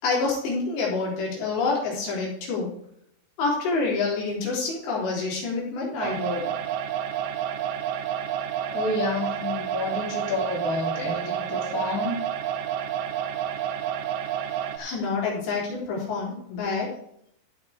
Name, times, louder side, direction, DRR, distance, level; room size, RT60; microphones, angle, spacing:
voice 1, 0.0-2.7 3.4-6.5 14.8-16.9, left 4 dB, 65° left, -4 dB, 5.6 m, -27 dB
sound 1, 6.0-14.8, right 10 dB, 85° right, 2.2 m, -30 dB
voice 2, 8.7-12.1, left 3 dB, 25° left, -2 dB, 2.3 m, -29 dB
14.5 x 6.0 x 4.9 m, 0.71 s
omnidirectional pair, 5.4 m